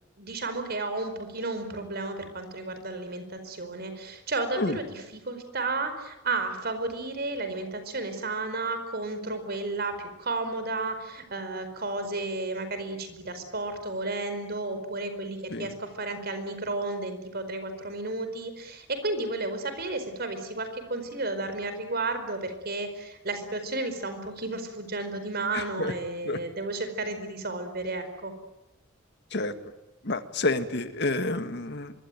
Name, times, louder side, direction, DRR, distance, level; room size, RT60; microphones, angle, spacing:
voice 1, 0.2-28.3, right 2 dB, 50° right, 9 dB, 4.7 m, -32 dB
voice 2, 25.5-25.9 26.3-26.4 29.3-29.5 30.0-31.9, left 2 dB, 60° left, 9 dB, 1.9 m, -29 dB
25.0 x 23.0 x 9.2 m, 0.99 s
head